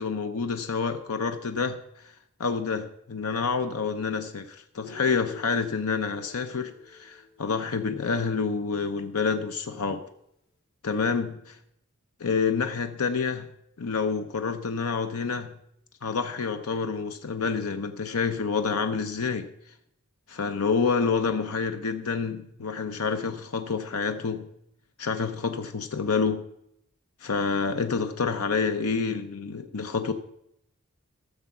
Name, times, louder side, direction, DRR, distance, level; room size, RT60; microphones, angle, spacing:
voice 1, 0.0-1.8 2.4-10.0 10.8-11.6 12.2-13.5 13.8-15.5 16.0-19.5 20.3-24.5 25.0-26.4 27.2-30.1, left 5 dB, 90° left, 8 dB, 0.7 m, -28 dB
Guitar, 4.8-8.8, left 6 dB, 75° left, 3.7 m, -49 dB
13.0 x 7.0 x 5.9 m, 0.77 s
head